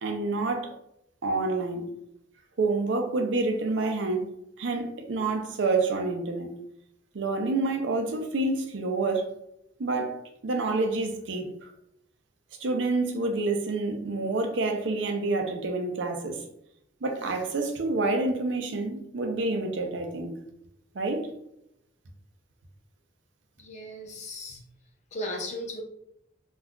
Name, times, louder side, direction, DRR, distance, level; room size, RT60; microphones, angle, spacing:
voice 1, 0.0-0.7 1.2-1.9 2.6-4.3 4.6-6.5 7.1-9.3 9.8-10.2 10.4-11.7 12.6-16.4 17.0-20.3 20.9-21.3, right 3 dB, 75° right, 4 dB, 0.5 m, -28 dB
voice 2, 23.6-24.6 25.1-25.8, left 1 dB, 35° left, 0 dB, 0.6 m, -36 dB
2.4 x 2.2 x 3.5 m, 0.79 s
head